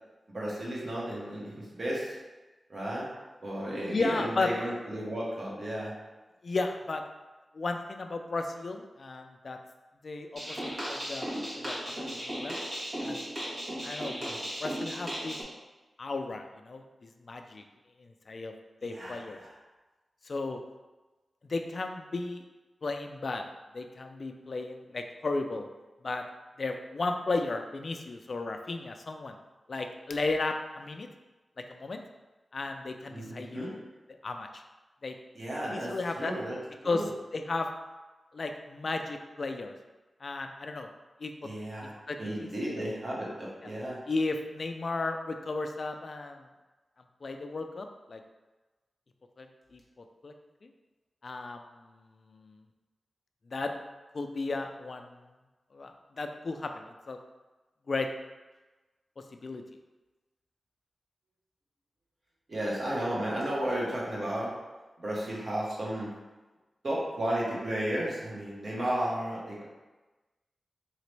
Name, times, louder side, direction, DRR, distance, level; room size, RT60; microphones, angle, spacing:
voice 1, 0.3-2.2 2.7-3.1 3.4-5.9 14.2-14.4 18.8-19.6 33.1-33.7 35.3-36.6 36.8-37.1 41.4-44.0 62.5-64.5 65.0-66.1 66.8-69.6, right 1 dB, 45° right, -5 dB, 1.2 m, -33 dB
voice 2, 3.8-4.5 6.4-7.0 7.5-9.6 10.0-12.6 13.0-13.2 13.8-14.3 14.6-15.4 16.0-17.6 18.0-18.5 18.8-19.4 20.2-20.6 21.4-22.4 22.8-23.5 23.7-25.7 26.0-26.2 26.6-29.4 29.7-31.1 31.7-32.0 32.5-33.8 34.2-34.6 35.0-35.2 35.7-36.3 36.8-37.1 37.3-37.7 38.3-39.7 40.2-40.9 41.2-41.3 41.8-42.8 44.1-46.5 47.2-48.2 49.4-50.3 50.6-50.7 51.2-51.6 52.1-52.5 53.5-53.7 54.1-55.2 55.7-57.2 57.9-58.1 59.4-59.6, left 3 dB, 50° left, 5 dB, 0.3 m, -34 dB
sound 1, 10.3-15.4, equal, 60° right, 1.5 m, -36 dB
4.0 x 2.9 x 3.2 m, 1.2 s
wide cardioid pair, 120°, 0 cm